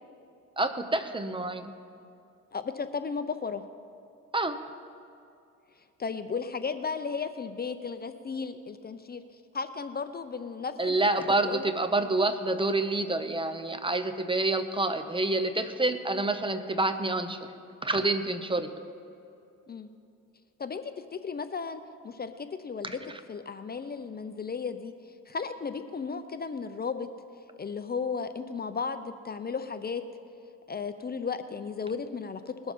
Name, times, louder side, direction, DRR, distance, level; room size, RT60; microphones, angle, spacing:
voice 1, 0.6-1.7 4.3-4.6 10.8-17.4 17.8-18.7 22.8-23.0, right 2 dB, 15° right, 9 dB, 0.8 m, -28 dB
voice 2, 2.5-3.6 6.0-9.2 9.5-11.7 19.7-19.9 20.6-22.9 23.3-24.9 25.3-27.1 27.6-30.0 30.7-32.7, left 5 dB, 30° left, 10 dB, 0.6 m, -35 dB
20.5 x 7.1 x 5.5 m, 2.6 s
cardioid pair, 90°, 30 cm